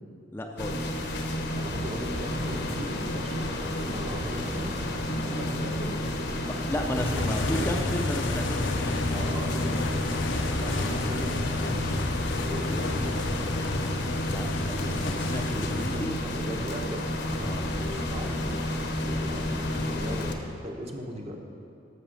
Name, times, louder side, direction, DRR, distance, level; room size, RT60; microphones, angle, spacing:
voice 1, 0.3-0.9 5.1-5.4 6.4-8.7 14.2-16.1 17.4-17.6, left 1 dB, 10° left, 1 dB, 0.5 m, -33 dB
sound 1, 0.6-20.4, left 1 dB, 65° left, 0.9 m, -31 dB
voice 2, 1.6-4.7 5.2-6.0 7.1-8.0 9.1-10.2 10.5-11.9 12.5-13.3 15.7-18.3 19.0-20.4 20.6-21.4, equal, 35° right, 2 dB, 1.1 m, -38 dB
sound 2, 6.9-16.0, left 2 dB, 90° left, 0.8 m, -31 dB
13.0 x 6.3 x 5.7 m, 2.7 s
head